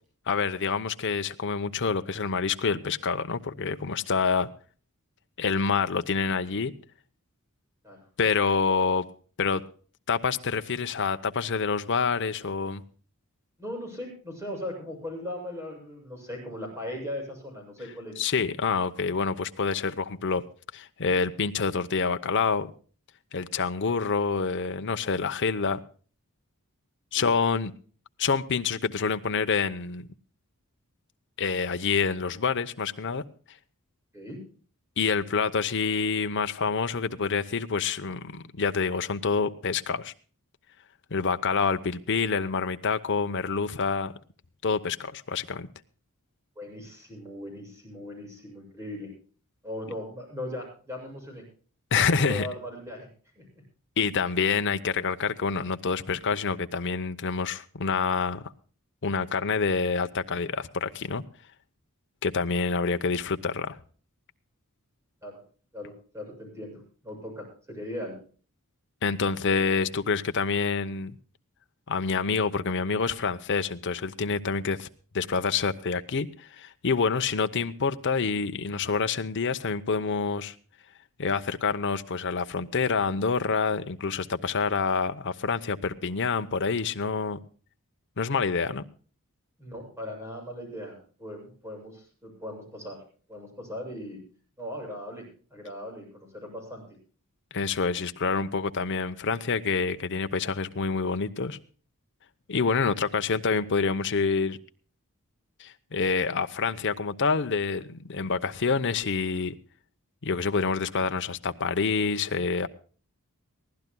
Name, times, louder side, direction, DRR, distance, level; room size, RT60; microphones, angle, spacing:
voice 1, 0.3-4.5 5.4-6.7 8.2-9.1 9.4-9.6 10.1-12.8 18.2-20.4 20.7-22.7 23.3-25.8 27.1-27.7 28.2-30.1 31.4-33.2 35.0-40.1 41.1-44.1 44.6-45.7 51.9-52.5 54.0-58.5 59.0-61.2 62.2-63.8 69.0-71.2 71.9-74.9 75.1-80.5 81.2-87.4 88.2-88.8 97.5-101.6 102.5-104.6 105.6-109.5 110.2-112.7, left 5 dB, 55° left, 0.8 m, -27 dB
voice 2, 13.6-18.2 27.1-27.3 34.1-34.4 46.6-49.1 49.6-51.5 51.9-53.1 53.4-53.5 65.2-65.4 65.7-68.2 89.6-93.0 93.3-94.2 94.6-96.8, left 1 dB, 15° right, 7.5 m, -38 dB
23.0 x 15.5 x 2.3 m
head